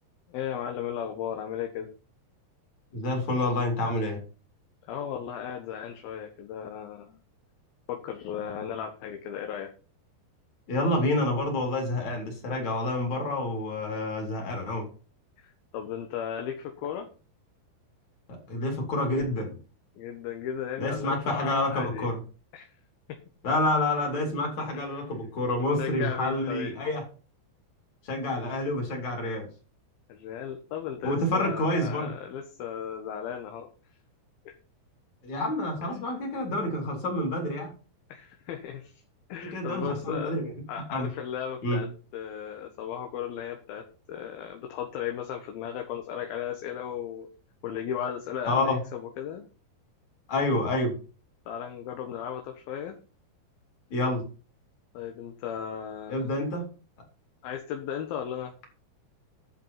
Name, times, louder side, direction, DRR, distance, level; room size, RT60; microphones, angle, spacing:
voice 1, 0.3-1.9 4.9-7.2 7.9-9.7 15.4-17.1 20.0-22.1 22.5-22.7 23.1-23.2 24.7-25.0 25.6-26.7 30.1-33.7 34.5-34.6 35.8-35.9 38.1-39.0 39.3-40.3 40.7-47.3 47.6-49.4 51.5-53.0 54.9-56.3 57.4-58.5, left 9 dB, 65° left, 4 dB, 3.0 m, -36 dB
voice 2, 2.9-4.2 10.7-14.9 18.5-19.6 20.8-22.2 23.4-27.0 28.0-29.5 31.0-32.1 35.2-37.7 39.5-40.5 40.9-41.1 41.6-41.8 48.5-48.8 50.3-50.9 53.9-54.2 56.1-56.6, left 1 dB, 45° left, 2 dB, 5.0 m, -28 dB
11.0 x 7.7 x 5.7 m, 0.36 s
omnidirectional pair, 4.8 m